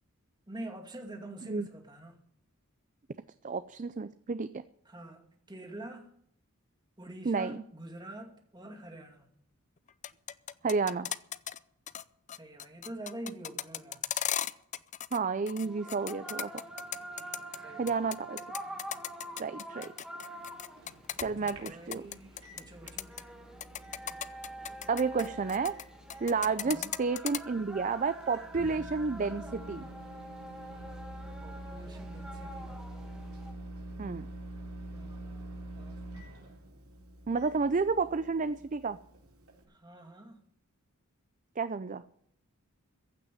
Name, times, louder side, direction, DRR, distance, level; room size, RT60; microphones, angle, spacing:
voice 1, 0.5-2.2 4.8-6.2 7.0-9.3 12.4-14.0 17.6-18.1 21.4-23.2 26.6-26.9 31.4-32.8 34.9-36.1 39.7-40.4, right 1 dB, 20° right, 2.3 m, -46 dB
voice 2, 3.4-4.6 7.3-7.6 10.6-11.1 15.1-16.6 17.8-18.4 19.4-19.9 21.2-22.0 24.9-25.8 26.2-29.9 34.0-34.3 37.3-39.0 41.6-42.0, right 4 dB, 35° right, 0.4 m, -31 dB
sound 1, 9.9-11.6 11.9-12.0 12.3-15.2 15.5-17.6 17.9-22.6 22.9-23.2 23.6-25.8 26.1-27.4, left 10 dB, 35° left, 0.5 m, -36 dB
evening call to prayer, 15.6-33.5, right 1 dB, 5° right, 1.9 m, -46 dB
Microwave oven, 20.3-39.6, right 1 dB, 65° right, 4.2 m, -47 dB
15.5 x 6.0 x 9.9 m
head